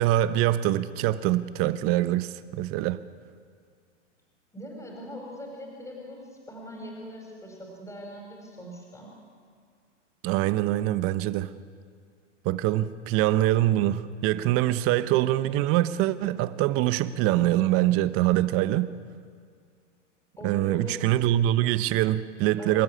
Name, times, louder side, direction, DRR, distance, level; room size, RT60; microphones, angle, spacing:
voice 1, 0.0-3.0 10.2-11.5 12.4-18.9 20.4-22.8, right 14 dB, 35° right, 1.0 m, -24 dB
voice 2, 4.5-9.1 20.4-21.0 22.6-22.8, equal, 10° left, 5.2 m, -41 dB
27.0 x 12.5 x 9.9 m
hypercardioid pair, 115°, 37 cm